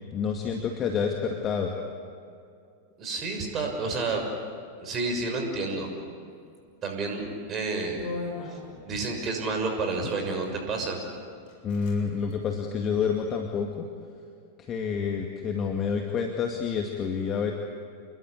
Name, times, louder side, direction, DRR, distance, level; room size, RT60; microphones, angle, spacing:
voice 1, 0.1-1.7 11.6-13.8 14.6-17.5, left 6 dB, 30° left, 2 dB, 2.3 m, -28 dB
voice 2, 3.0-4.2 4.8-5.9 6.8-8.1 8.5-8.6 8.8-11.0, right 3 dB, 30° right, 3 dB, 6.5 m, -30 dB
sound 1, 7.2-7.4 8.0-9.1 10.1-10.5 11.1-11.2 11.5-12.0 12.2-12.4 12.9-13.6, left 4 dB, 50° left, 7.1 m, -39 dB
29.0 x 21.5 x 8.5 m, 2.3 s
figure-of-eight pair, 90°, 0 cm